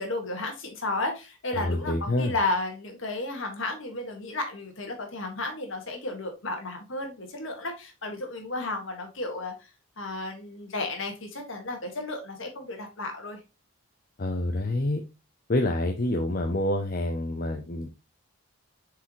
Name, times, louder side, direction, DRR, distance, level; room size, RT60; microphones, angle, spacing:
voice 1, 0.0-9.7 10.0-13.4, left 2 dB, 60° left, 1.8 m, -33 dB
voice 2, 1.6-2.3 14.2-15.0 15.5-17.9, left 1 dB, 40° left, 0.6 m, -27 dB
6.9 x 4.8 x 3.1 m
head